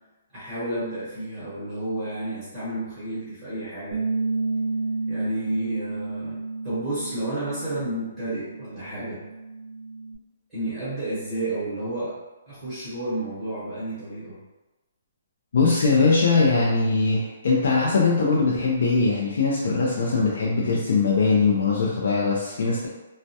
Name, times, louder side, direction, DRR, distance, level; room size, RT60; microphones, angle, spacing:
voice 1, 0.3-4.0 5.1-9.2 10.5-12.1 12.5-14.4, right 1 dB, 15° right, -13 dB, 0.9 m, -31 dB
Bass guitar, 3.9-10.2, right 3 dB, 80° right, 0.4 m, -31 dB
voice 2, 15.5-22.9, left 4 dB, 65° left, -5 dB, 0.4 m, -21 dB
2.2 x 2.0 x 2.7 m, 1.1 s
hypercardioid pair, 170°, 0 cm